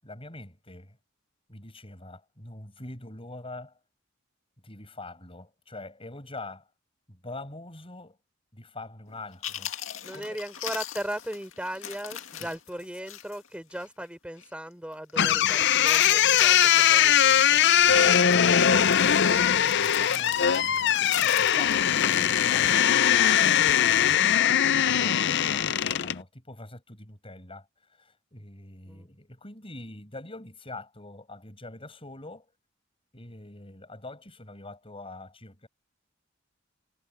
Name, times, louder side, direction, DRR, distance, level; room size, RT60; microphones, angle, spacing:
voice 1, 0.0-1.0 1.5-3.8 4.6-6.7 7.1-8.2 8.5-9.7 10.1-10.4 12.4-12.5 17.8-23.2 23.8-24.3 24.8-32.5 33.1-35.7, left 2 dB, 30° left, 7.9 m, -44 dB
Chewing mastication, 9.1-9.2 9.4-13.5 13.7-13.9 14.4-14.7 14.9-15.4 15.7-17.2 17.5-17.8 18.2-18.4 18.8-22.7 23.1-23.4, left 10 dB, 75° left, 2.3 m, -38 dB
voice 2, 10.0-17.4 28.9-29.1, right 1 dB, 5° right, 6.3 m, -37 dB
sound 1, 15.2-26.2, left 9 dB, 60° left, 0.6 m, -21 dB
head